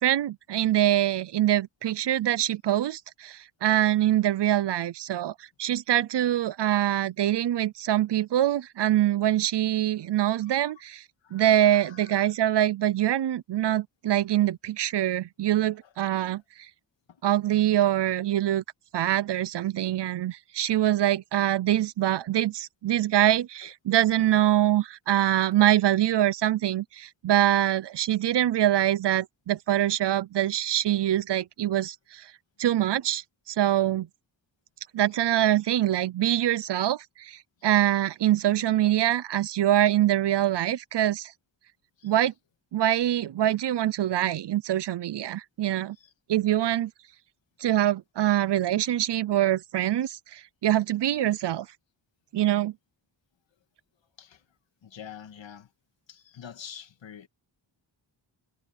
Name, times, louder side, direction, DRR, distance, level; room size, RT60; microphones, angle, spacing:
voice 1, 0.0-5.3 5.6-11.0 11.3-16.4 17.2-18.6 18.9-32.3 32.6-34.1 34.9-41.3 42.0-42.3 42.7-46.0 46.3-46.9 47.6-51.7 52.3-52.7, right 12 dB, 65° right, 0.7 m, -24 dB
voice 2, 11.2-12.3 15.8-15.9 17.1-17.2 23.6-23.7 35.2-35.3 37.6-37.7 39.2-39.3 42.0-42.1 45.9-46.1 54.2-54.4 54.8-55.7 56.1-57.3, left 8 dB, 75° left, 2.4 m, -47 dB
wide cardioid pair, 140°, 45 cm